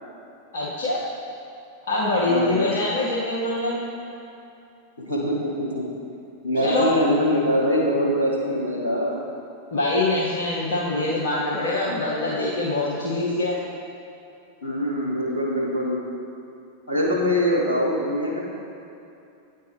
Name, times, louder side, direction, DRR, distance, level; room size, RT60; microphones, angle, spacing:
voice 1, 0.5-1.0 1.9-3.8 6.6-6.9 9.7-13.6, left 2 dB, 60° left, -6 dB, 0.8 m, -24 dB
voice 2, 2.2-2.7 5.1-5.8 6.4-9.2 14.6-16.0 16.9-18.4, equal, 80° left, -3 dB, 1.2 m, -23 dB
9.2 x 4.5 x 3.3 m, 2.7 s
figure-of-eight pair, 90°, 0 cm